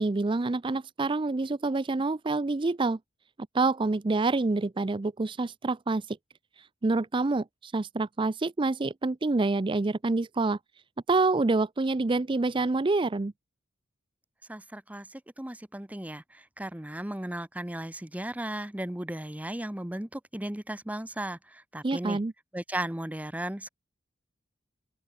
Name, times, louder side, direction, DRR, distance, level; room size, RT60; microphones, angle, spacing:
voice 1, 0.0-3.0 3.5-6.2 6.6-10.6 11.1-13.3 21.8-22.3, right 3 dB, 25° right, 0.5 m, -27 dB
voice 2, 14.5-22.2 22.5-23.7, right 1 dB, 10° right, 0.8 m, -36 dB
open air
head